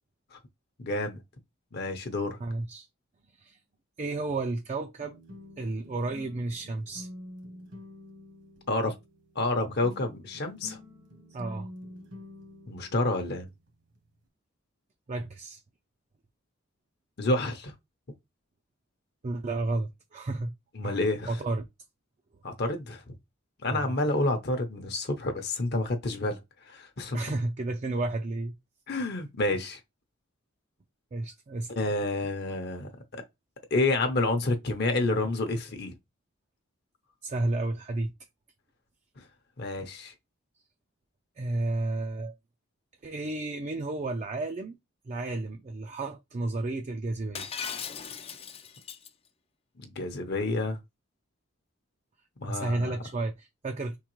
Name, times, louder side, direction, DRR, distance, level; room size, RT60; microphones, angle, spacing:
voice 1, 0.8-1.2 1.7-2.4 8.7-8.9 9.4-10.8 12.7-13.5 17.2-17.7 20.7-21.3 22.4-23.0 23.6-26.4 26.7-27.2 28.9-29.8 31.8-32.9 33.7-35.9 39.6-40.1 49.8-50.8 52.4-52.9, left 2 dB, 50° left, 0.7 m, -29 dB
voice 2, 2.4-2.9 3.4-3.6 4.0-5.2 5.6-7.1 11.3-11.7 15.1-15.6 19.2-20.5 20.8-21.0 21.3-21.6 23.7-24.0 27.1-28.5 31.1-31.7 37.2-38.1 41.4-42.3 43.0-44.8 45.1-47.5 52.5-54.0, right 2 dB, 35° right, 0.4 m, -32 dB
sound 1, 5.0-14.3, left 1 dB, 60° right, 1.2 m, -48 dB
Shatter, 47.4-49.1, left 7 dB, 30° left, 0.4 m, -38 dB
4.6 x 3.7 x 3.0 m
head